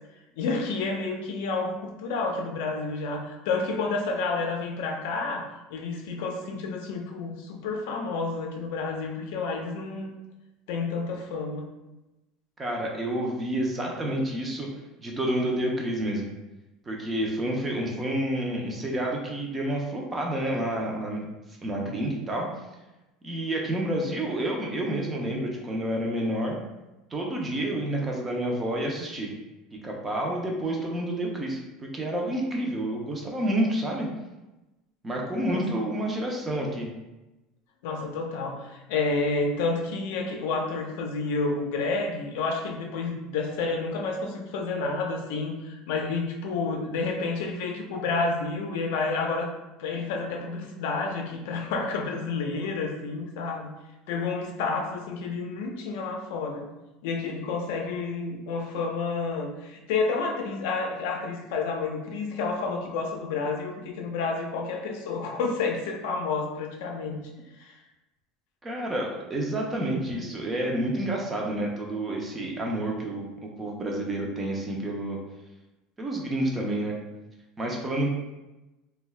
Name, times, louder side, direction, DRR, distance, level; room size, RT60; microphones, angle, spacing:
voice 1, 0.4-10.1 10.7-11.7 35.5-35.6 37.8-49.5 49.8-53.7 54.1-56.7 57.0-67.3 67.6-67.8, left 4 dB, 70° left, 2 dB, 0.5 m, -30 dB
voice 2, 12.6-14.7 15.0-16.3 16.9-21.3 21.6-22.5 23.2-26.6 27.1-29.3 29.8-34.1 35.0-36.9 68.6-73.3 73.6-75.2 76.0-77.0 77.6-78.1, right 1 dB, 15° right, -1 dB, 0.4 m, -29 dB
2.6 x 2.2 x 3.2 m, 1.0 s
cardioid pair, 175°, 0 cm